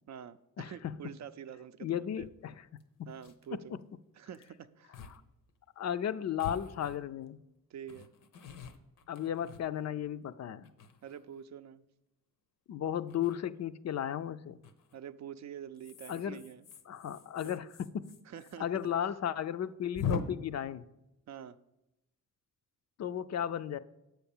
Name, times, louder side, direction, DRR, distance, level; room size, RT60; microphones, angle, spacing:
voice 1, 0.1-2.3 3.1-3.8 4.2-5.0 7.7-8.1 11.0-11.8 14.9-16.7 17.4-17.5 18.3-18.7 21.3-21.6, right 9 dB, 55° right, 0.5 m, -46 dB
voice 2, 1.8-2.5 5.1-5.2 5.8-7.4 9.1-10.7 12.7-14.6 16.1-16.4 16.9-18.1 18.6-20.8 23.0-23.8, left 9 dB, 55° left, 0.4 m, -35 dB
sound 1, 2.2-2.3 2.8-2.9 3.1-3.5 4.3-4.5 4.9-5.2 5.5-5.6 6.4-7.3 7.9-10.1 10.6-11.4 13.1-13.4 14.6-15.0 15.7-18.6 18.8-18.9 19.2-19.3 19.9-20.2, left 6 dB, 80° left, 0.8 m, -42 dB
7.8 x 5.8 x 7.1 m
wide cardioid pair, 130°, 32 cm